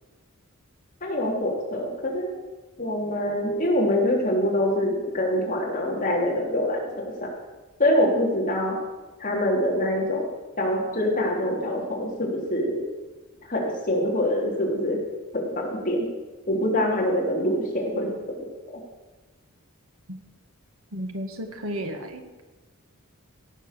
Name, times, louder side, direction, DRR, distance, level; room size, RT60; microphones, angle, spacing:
voice 1, 1.0-2.3 2.8-7.1 7.8-8.7 9.2-10.2 10.6-12.8 13.5-15.0 15.3-16.1 16.5-18.5 18.7-18.8, left 1 dB, 40° left, -2 dB, 3.2 m, -25 dB
voice 2, 20.9-22.4, equal, 65° right, 5 dB, 1.7 m, -33 dB
17.0 x 6.7 x 6.7 m, 1.2 s
head